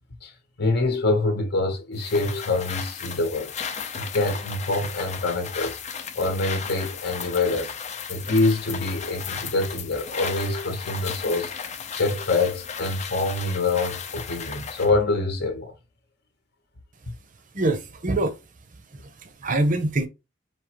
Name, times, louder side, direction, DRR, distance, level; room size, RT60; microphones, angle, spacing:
voice 1, 0.6-3.5 3.9-5.8 6.1-7.7 8.1-15.7, left 2 dB, 60° left, 0.9 m, -25 dB
sound 1, 2.0-14.9, left 7 dB, 40° left, 0.6 m, -35 dB
voice 2, 17.5-18.4 18.7-20.1, right 2 dB, 45° right, 0.7 m, -25 dB
5.0 x 2.9 x 3.0 m
head